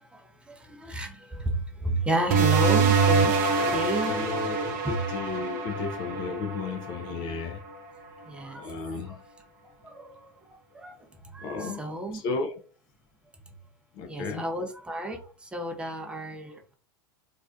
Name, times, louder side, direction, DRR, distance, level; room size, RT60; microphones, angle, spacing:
voice 1, 0.5-3.4 3.7-4.5 4.8-5.0 8.3-9.2 9.8-10.2 10.7-10.9 11.3-12.2 14.1-16.8, right 1 dB, 10° right, 0.5 m, -32 dB
sound 1, 2.3-7.5, right 4 dB, 50° right, 0.6 m, -25 dB
voice 2, 4.1-7.6 8.6-9.2 11.4-11.8 12.1-12.6 13.9-14.4, left 4 dB, 45° left, 0.4 m, -34 dB
2.4 x 2.1 x 2.4 m
hypercardioid pair, 90°, 11 cm